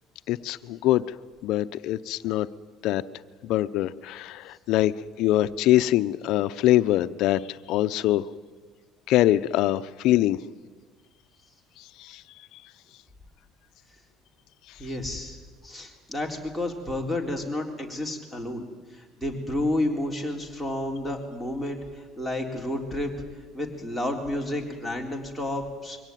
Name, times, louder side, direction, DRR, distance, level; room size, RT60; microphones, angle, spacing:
voice 1, 0.3-1.1 1.4-2.5 2.8-3.0 3.4-4.9 5.2-8.3 9.1-10.4 11.8-12.2, left 14 dB, 70° left, 13 dB, 0.7 m, -23 dB
voice 2, 14.8-15.4 15.6-18.7 18.9-21.8 22.2-23.1 23.5-26.0, left 1 dB, 5° right, 4 dB, 3.7 m, -30 dB
23.5 x 17.5 x 9.3 m, 1.5 s
cardioid pair, 120°, 0 cm